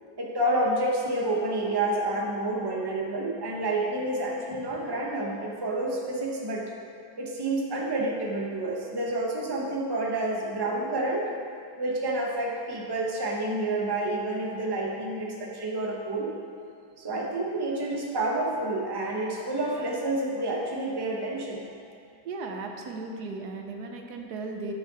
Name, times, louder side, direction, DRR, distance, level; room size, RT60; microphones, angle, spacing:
voice 1, 0.2-6.6 7.2-11.3 11.8-16.3 17.0-21.7, right 2 dB, 20° right, -2 dB, 0.8 m, -29 dB
voice 2, 22.2-24.7, right 3 dB, 80° right, 3 dB, 1.4 m, -36 dB
9.1 x 7.3 x 4.0 m, 2.5 s
omnidirectional pair, 1.7 m